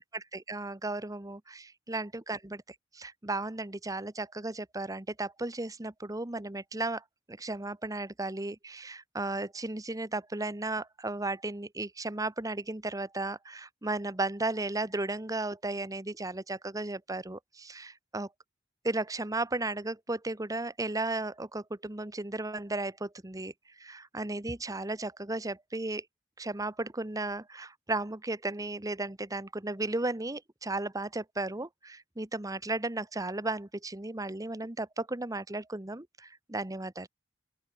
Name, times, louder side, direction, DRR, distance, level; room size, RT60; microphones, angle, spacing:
voice 1, 0.0-2.6 2.9-18.3 18.8-23.5 23.8-26.0 26.4-37.1, right 2 dB, 20° right, 1.1 m, -35 dB
open air
head